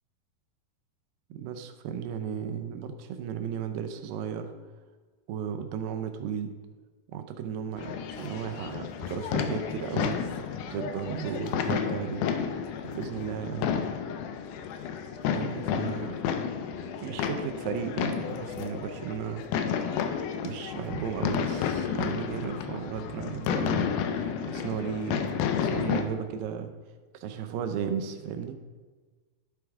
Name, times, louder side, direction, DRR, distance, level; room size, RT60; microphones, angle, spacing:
voice 1, 1.3-4.5 5.3-6.5 7.1-10.2 10.7-12.2 12.8-13.8 15.3-16.2 17.0-19.5 20.4-25.3 25.6-26.7 27.2-28.5, right 7 dB, 80° right, 7 dB, 2.3 m, -34 dB
sound 1, 7.8-26.0, left 7 dB, 80° left, 1.9 m, -31 dB
11.0 x 4.7 x 3.5 m, 1.4 s
omnidirectional pair, 4.1 m